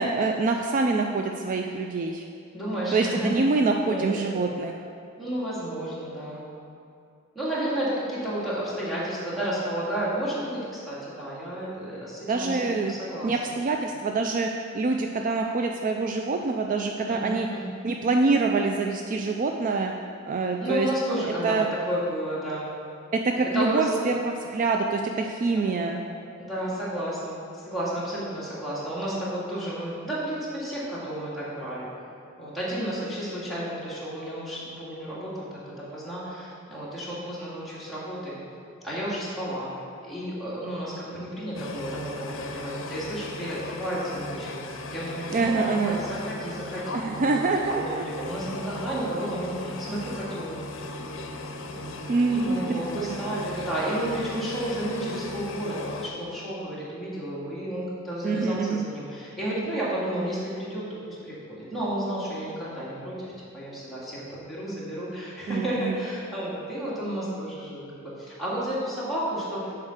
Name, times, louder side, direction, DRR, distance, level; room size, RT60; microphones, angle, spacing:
voice 1, 0.0-2.2 2.9-4.7 12.3-12.9 13.2-14.5 14.7-17.5 17.8-19.9 20.3-20.9 21.4-21.7 23.1-26.0 45.3-46.0 46.9-48.0 52.1-53.4 58.2-58.9 65.5-65.9, right 3 dB, 40° right, 3 dB, 0.3 m, -25 dB
voice 2, 2.5-3.3 3.8-4.4 5.2-6.5 7.3-13.5 17.1-17.7 20.6-22.7 23.4-23.9 25.7-26.0 26.4-31.9 32.4-38.3 38.8-39.7 40.0-44.6 44.9-47.4 47.7-51.2 51.7-69.6, right 1 dB, ahead, -9 dB, 2.1 m, -32 dB
sound 1, 41.5-56.1, left 2 dB, 65° left, 0.7 m, -37 dB
7.2 x 4.5 x 6.4 m, 2.4 s
head